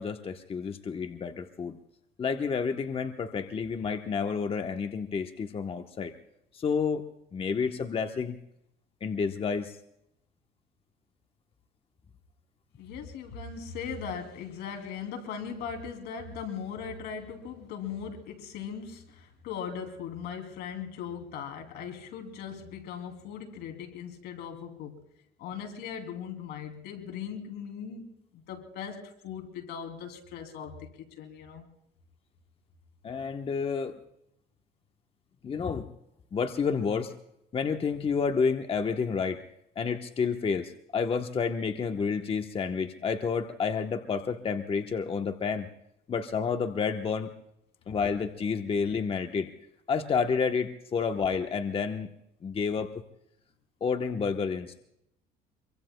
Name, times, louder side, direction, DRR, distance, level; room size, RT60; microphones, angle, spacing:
voice 1, 0.0-1.8 2.2-6.1 6.5-8.4 9.0-9.8 33.0-33.9 35.4-35.9 36.3-37.1 37.5-39.4 39.8-45.7 46.1-47.3 47.9-49.5 49.9-52.2 52.4-52.9 53.8-54.8, left 5 dB, 35° left, 1.0 m, -30 dB
voice 2, 12.8-25.0 25.4-31.6, left 7 dB, 80° left, 2.8 m, -39 dB
25.5 x 24.0 x 2.2 m
cardioid pair, 110°, 17 cm